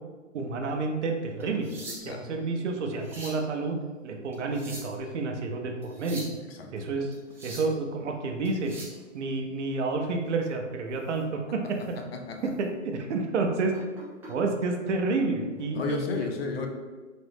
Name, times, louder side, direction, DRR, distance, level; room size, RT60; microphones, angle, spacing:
voice 1, 0.3-1.7 2.0-3.8 4.0-6.3 6.7-7.1 7.4-8.7 9.1-12.0 12.6-13.7 14.3-16.3, right 3 dB, 60° right, 3 dB, 0.7 m, -29 dB
sound 1, 1.4-2.3 2.8-3.4 4.3-5.1 5.8-6.4 7.1-7.8 8.5-9.0 11.0-11.2 11.7-11.9 12.4-12.5 13.7-14.3 15.4-15.6, right 1 dB, 5° right, 0.8 m, -43 dB
voice 2, 1.9-2.2 6.4-6.7 12.0-12.5 15.7-16.7, left 4 dB, 50° left, 3 dB, 0.6 m, -33 dB
4.0 x 2.6 x 3.4 m, 1.4 s
hypercardioid pair, 140°, 39 cm